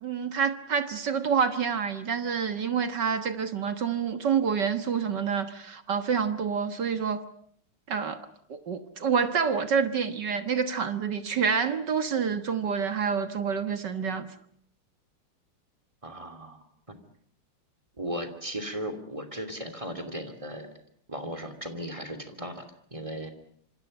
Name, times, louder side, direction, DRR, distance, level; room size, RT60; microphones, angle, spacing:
voice 1, 0.0-7.2 7.9-8.2 8.5-14.3, right 6 dB, 55° right, 2.0 m, -27 dB
voice 2, 16.0-16.6 16.9-17.0 18.0-20.7 21.1-23.3, equal, 15° right, 2.8 m, -36 dB
27.0 x 26.0 x 5.5 m
omnidirectional pair, 2.4 m